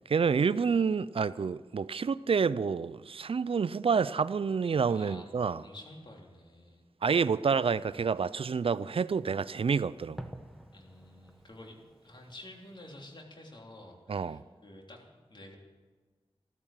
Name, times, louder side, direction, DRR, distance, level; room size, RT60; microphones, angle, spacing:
voice 1, 0.1-5.6 7.0-10.3 14.1-14.4, right 5 dB, 65° right, 0.4 m, -28 dB
voice 2, 4.9-6.8 7.9-8.0 10.7-11.8 12.0-15.6, left 1 dB, 50° left, 3.3 m, -50 dB
Fireworks, 7.5-13.2, right 1 dB, ahead, 1.4 m, -52 dB
14.0 x 13.5 x 7.4 m
wide cardioid pair, 55°, 10 cm